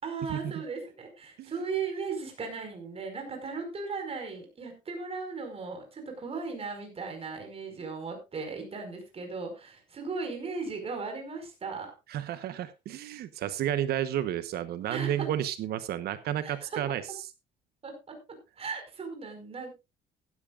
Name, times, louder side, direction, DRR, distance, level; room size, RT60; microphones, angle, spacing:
voice 1, 0.0-11.9 14.9-15.3 16.4-16.8 17.8-19.8, right 4 dB, 35° right, 4 dB, 4.9 m, -37 dB
voice 2, 12.1-17.0, right 11 dB, 70° right, 13 dB, 1.0 m, -31 dB
15.5 x 12.0 x 2.4 m, 0.25 s
cardioid pair, 110°, 17 cm